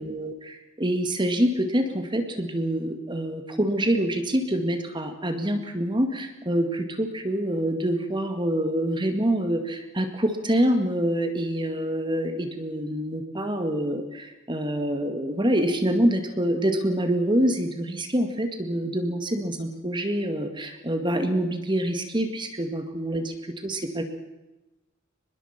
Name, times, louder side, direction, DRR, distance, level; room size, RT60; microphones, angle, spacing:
voice 1, 0.0-24.0, right 1 dB, 20° right, 7 dB, 2.1 m, -26 dB
24.0 x 21.0 x 6.0 m, 1.0 s
head